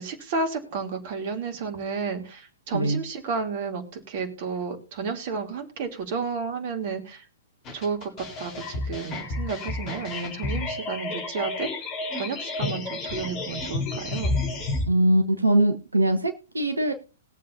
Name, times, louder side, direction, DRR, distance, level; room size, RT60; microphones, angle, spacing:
voice 1, 0.0-7.2 7.7-11.7 12.1-14.3, right 5 dB, 45° right, 4 dB, 3.0 m, -32 dB
sound 1, 7.6-14.8, left 2 dB, 30° left, 3.9 m, -31 dB
voice 2, 14.9-16.9, right 1 dB, 80° right, 5 dB, 1.2 m, -22 dB
21.0 x 7.6 x 2.7 m, 0.36 s
figure-of-eight pair, 110°, 0 cm